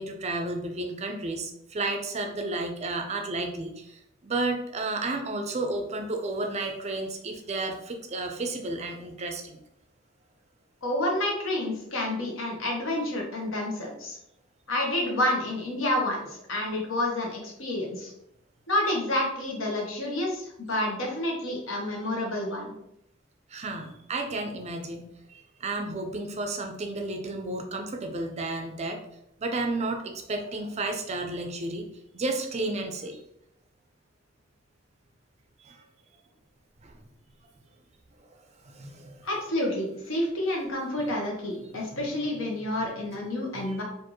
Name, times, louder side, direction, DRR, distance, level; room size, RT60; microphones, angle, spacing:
voice 1, 0.0-9.6 23.5-29.0 29.4-31.9 32.1-33.2 35.6-35.8 36.8-37.0 38.6-39.3 43.5-43.8, right 2 dB, 35° right, 4 dB, 0.5 m, -32 dB
voice 2, 10.8-14.2 14.7-18.1 18.7-22.7 39.2-43.8, left 1 dB, 70° left, -1 dB, 1.2 m, -29 dB
4.4 x 2.6 x 3.0 m, 0.80 s
head